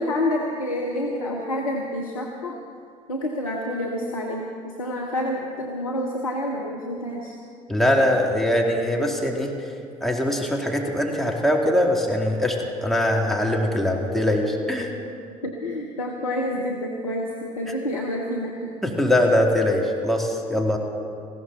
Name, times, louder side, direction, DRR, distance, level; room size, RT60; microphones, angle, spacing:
voice 1, 0.0-2.6 3.1-7.3 15.4-18.8, left 1 dB, 85° left, -1 dB, 1.0 m, -28 dB
voice 2, 7.7-9.5 10.0-14.9 18.8-20.8, left 1 dB, ahead, -1 dB, 2.6 m, -22 dB
19.5 x 16.0 x 4.1 m, 2.3 s
figure-of-eight pair, 55°, 17 cm